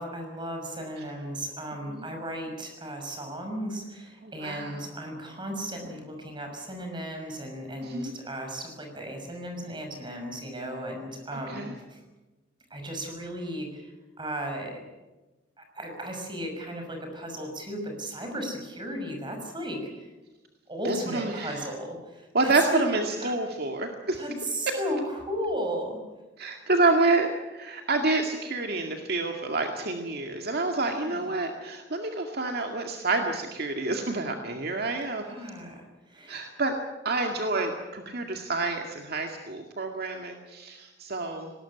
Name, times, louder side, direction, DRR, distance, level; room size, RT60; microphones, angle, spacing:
voice 1, 0.0-12.0 12.7-13.9 14.2-14.8 15.6-19.8 20.7-22.8 23.2-23.3 24.1-26.0 30.8-31.3 35.2-36.5, equal, 25° right, 3 dB, 6.1 m, -35 dB
voice 2, 4.2-4.9 7.8-8.1 11.3-11.7 20.8-21.7 22.3-24.2 26.4-35.2 36.3-36.7 37.0-41.5, right 3 dB, 60° right, 3 dB, 2.1 m, -28 dB
20.0 x 18.5 x 9.9 m, 1.1 s
head